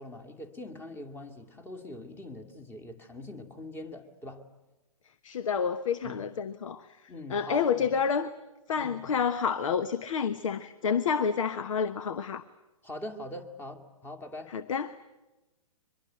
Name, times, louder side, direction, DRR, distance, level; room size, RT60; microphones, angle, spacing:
voice 1, 0.0-4.5 6.0-6.2 7.1-7.9 8.8-9.1 12.8-14.5, left 1 dB, 10° left, 2.1 m, -42 dB
voice 2, 5.2-6.9 7.3-8.3 8.7-12.4 14.5-14.9, left 6 dB, 65° left, 1.1 m, -29 dB
24.0 x 22.0 x 9.1 m
hypercardioid pair, 130°, 18 cm